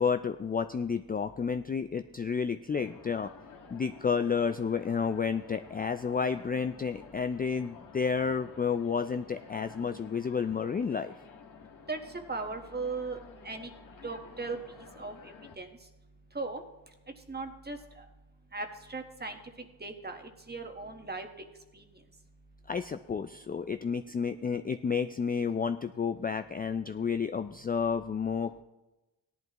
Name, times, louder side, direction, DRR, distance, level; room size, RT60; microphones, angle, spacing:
voice 1, 0.0-3.3 3.7-11.1 22.7-28.6, left 6 dB, 25° left, 9 dB, 0.4 m, -31 dB
sound 1, 2.7-15.6, left 5 dB, 50° left, 1.4 m, -52 dB
voice 2, 12.3-13.2 13.4-13.7 14.0-14.6 15.0-15.7 16.3-16.6 17.3-18.0 18.5-19.4 19.8-21.3 21.7-21.8, right 3 dB, 25° right, 5 dB, 1.4 m, -37 dB
16.0 x 11.0 x 3.0 m, 1.1 s
cardioid pair, 60°, 41 cm